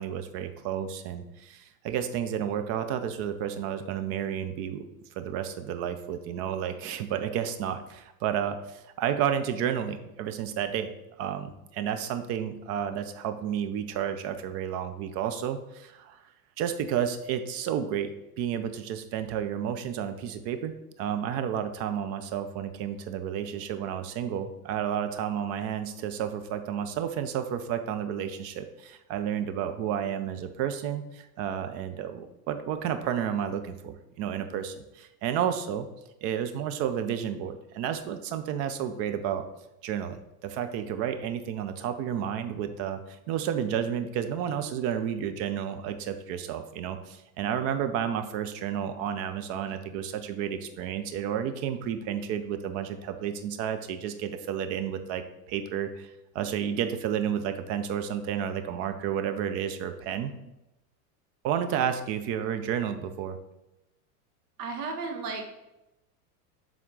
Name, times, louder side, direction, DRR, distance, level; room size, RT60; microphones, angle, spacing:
voice 1, 0.0-4.8 5.2-10.9 11.2-16.2 16.6-35.9 36.2-39.5 39.8-60.5 61.4-63.4, right 9 dB, 35° right, 9 dB, 0.4 m, -31 dB
voice 2, 64.6-65.5, right 4 dB, 80° right, 3 dB, 1.4 m, -34 dB
7.0 x 3.6 x 3.8 m, 0.92 s
supercardioid pair, 125°, 46 cm